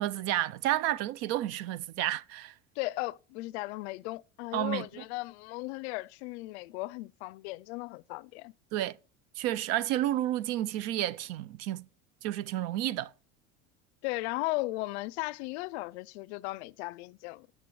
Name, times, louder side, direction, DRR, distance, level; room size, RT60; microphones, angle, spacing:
voice 1, 0.0-2.5 4.5-4.9 8.7-9.0 9.4-11.9 12.2-13.1, right 13 dB, 50° right, 0.4 m, -31 dB
voice 2, 2.8-8.5 14.0-17.5, left 21 dB, 85° left, 0.5 m, -36 dB
18.5 x 6.6 x 3.1 m
cardioid pair, 150°, 32 cm